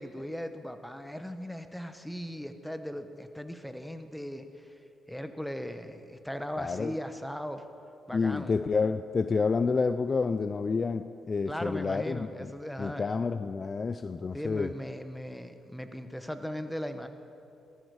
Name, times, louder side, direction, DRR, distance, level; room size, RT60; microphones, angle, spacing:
voice 1, 0.0-4.7 5.1-7.6 8.1-8.5 11.5-13.0 14.3-17.1, equal, 5° left, 8 dB, 1.0 m, -38 dB
voice 2, 6.6-7.0 8.1-12.5 12.8-14.7, left 4 dB, 35° left, 11 dB, 0.4 m, -29 dB
17.5 x 14.5 x 4.8 m, 2.7 s
cardioid pair, 90°, 0 cm